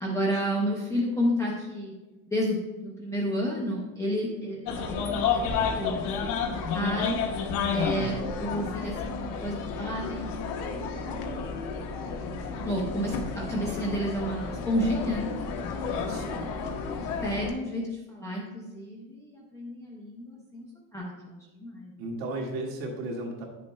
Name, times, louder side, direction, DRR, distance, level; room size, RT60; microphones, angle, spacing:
voice 1, 0.0-1.9 2.3-4.8 5.7-6.0 6.2-7.2 7.7-10.5 12.1-15.3 16.9-21.9, equal, 5° left, -5 dB, 0.3 m, -31 dB
sound 1, 4.7-17.5, left 5 dB, 90° left, 1.1 m, -31 dB
voice 2, 16.0-16.5 22.0-23.4, right 2 dB, 65° right, -2 dB, 1.9 m, -35 dB
9.2 x 6.9 x 2.2 m, 1.1 s
cardioid pair, 175°, 44 cm